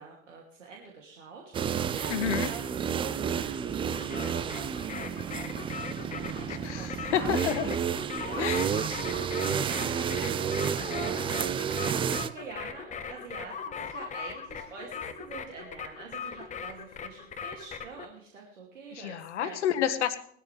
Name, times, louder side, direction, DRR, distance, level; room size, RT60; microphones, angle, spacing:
voice 1, 0.0-1.5 1.8-7.4 8.2-9.0 9.5-19.6, right 5 dB, 70° right, 0 dB, 2.8 m, -45 dB
sound 1, 1.5-12.3, right 8 dB, 15° right, 0.5 m, -31 dB
voice 2, 2.1-2.5 6.5-7.7 8.4-8.7 18.9-20.2, left 10 dB, 60° left, 12 dB, 1.5 m, -29 dB
sound 2, 3.9-18.1, left 6 dB, 20° left, 1.1 m, -40 dB
20.0 x 13.0 x 3.4 m, 0.64 s
figure-of-eight pair, 85°, 39 cm